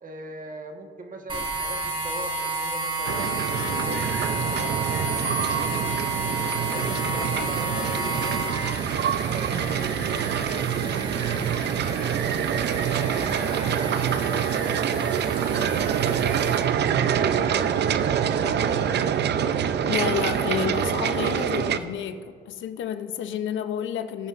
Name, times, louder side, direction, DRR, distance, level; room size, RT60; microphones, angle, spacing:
voice 1, 0.0-6.1 6.7-8.4 8.9-11.5 11.9-13.9 14.3-16.2 16.6-17.7 18.2-19.2, right 3 dB, 40° right, 1.3 m, -39 dB
sound 1, 1.3-16.6, right 1 dB, 25° right, 2.5 m, -32 dB
sound 2, 3.0-21.8, right 8 dB, 60° right, 0.6 m, -25 dB
voice 2, 19.8-24.3, left 8 dB, 75° left, 0.7 m, -30 dB
19.0 x 9.3 x 2.5 m
cardioid pair, 90°, 20 cm